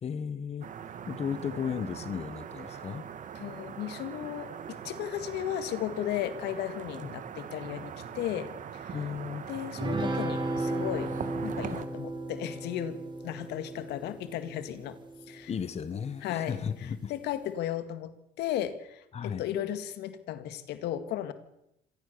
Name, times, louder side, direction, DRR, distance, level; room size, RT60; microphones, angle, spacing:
voice 1, 0.0-0.7 1.1-3.1 7.0-7.1 8.9-9.4 15.5-17.1 19.1-19.4, left 7 dB, 40° left, 13 dB, 1.4 m, -35 dB
sound 1, 0.6-11.9, right 8 dB, 50° right, 1.9 m, -41 dB
voice 2, 3.3-9.0 9.5-11.2 11.4-15.0 15.3-15.5 16.2-21.3, left 11 dB, 80° left, 11 dB, 2.1 m, -35 dB
sound 2, 9.8-15.4, right 2 dB, 25° right, 3.8 m, -35 dB
25.5 x 17.5 x 6.9 m, 0.82 s
cardioid pair, 110°, 17 cm